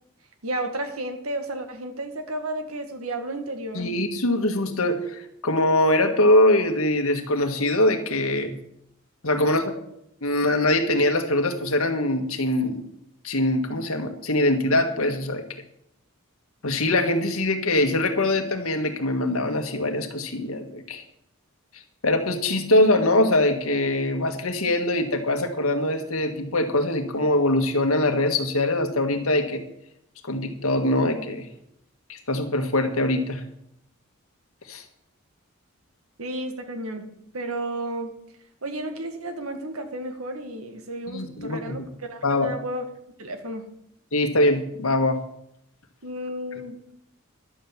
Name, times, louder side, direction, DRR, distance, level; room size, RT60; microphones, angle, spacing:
voice 1, 0.4-3.9 36.2-37.1 37.3-38.1 38.6-42.9 43.2-43.7 46.0-46.8, right 1 dB, 85° right, 6 dB, 1.9 m, -32 dB
voice 2, 3.7-8.5 9.2-9.8 10.2-12.8 13.2-15.4 16.6-21.0 22.0-29.6 30.2-31.5 32.1-33.4 34.7-34.8 41.1-41.8 42.2-42.5 44.1-45.2, left 1 dB, 80° left, 5 dB, 1.8 m, -23 dB
11.5 x 7.8 x 7.1 m, 0.77 s
head